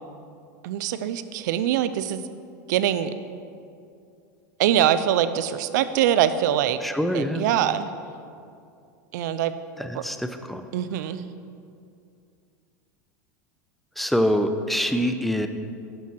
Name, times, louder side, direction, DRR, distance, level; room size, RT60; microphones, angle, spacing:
voice 1, 0.6-2.2 2.7-3.1 4.6-6.8 7.1-7.9 9.1-9.5 9.9-10.0 10.7-11.2, right 11 dB, 70° right, 13 dB, 0.7 m, -23 dB
voice 2, 6.8-7.4 9.8-10.7 14.0-15.5, equal, ahead, 8 dB, 0.9 m, -25 dB
12.0 x 11.0 x 4.7 m, 2.5 s
hypercardioid pair, 95°, 10 cm